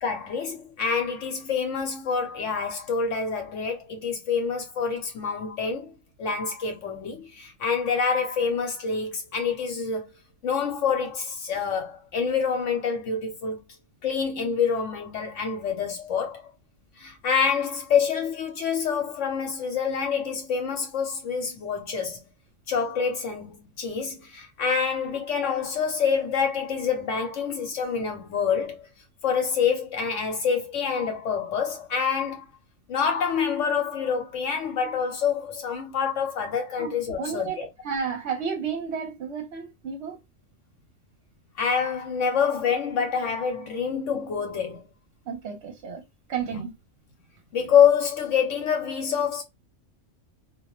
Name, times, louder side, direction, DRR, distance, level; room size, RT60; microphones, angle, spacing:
voice 1, 0.0-5.9 6.2-10.1 10.4-13.6 14.0-16.4 17.0-22.2 22.7-28.8 29.2-32.4 32.9-37.7 41.6-44.9 46.5-46.6 47.5-49.4, left 6 dB, 70° left, 1.0 m, -26 dB
voice 2, 36.8-40.2 45.3-46.0 46.3-46.7, right 6 dB, 65° right, 0.9 m, -32 dB
2.3 x 2.0 x 2.9 m
omnidirectional pair, 1.4 m